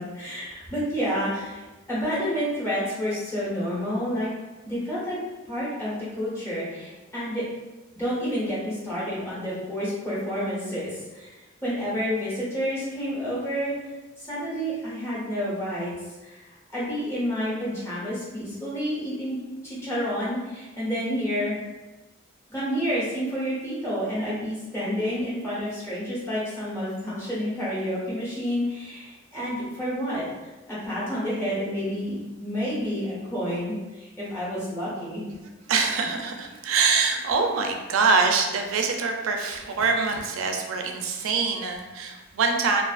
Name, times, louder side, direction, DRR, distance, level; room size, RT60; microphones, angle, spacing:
voice 1, 0.0-1.6 1.9-4.3 4.6-5.2 5.4-7.4 8.0-13.8 14.2-15.9 16.2-21.6 22.5-35.3, equal, 15° left, -10 dB, 0.9 m, -29 dB
voice 2, 35.7-42.8, right 4 dB, 90° right, 3 dB, 0.4 m, -24 dB
2.4 x 2.3 x 2.4 m, 1.1 s
head